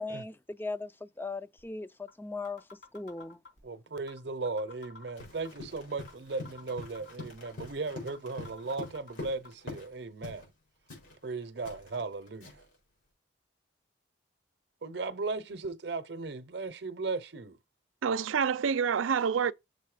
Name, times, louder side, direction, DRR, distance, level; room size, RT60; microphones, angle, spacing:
voice 1, 0.0-2.6 2.9-3.4, left 3 dB, 10° left, 0.4 m, -38 dB
sound 1, 1.6-1.7 2.1-2.2 2.4-3.6 4.1-4.2 4.4-5.6 6.1-6.2 6.4-7.6 8.1-8.2 8.4-9.5, left 4 dB, 65° left, 3.3 m, -50 dB
voice 2, 3.6-10.5 11.2-12.5 14.8-17.6, right 3 dB, 55° right, 0.7 m, -37 dB
Run, 5.2-9.9 10.2-10.5 10.9-12.7, left 2 dB, 80° left, 4.6 m, -45 dB
voice 3, 18.0-19.5, right 6 dB, 90° right, 0.4 m, -27 dB
6.6 x 4.2 x 4.9 m
head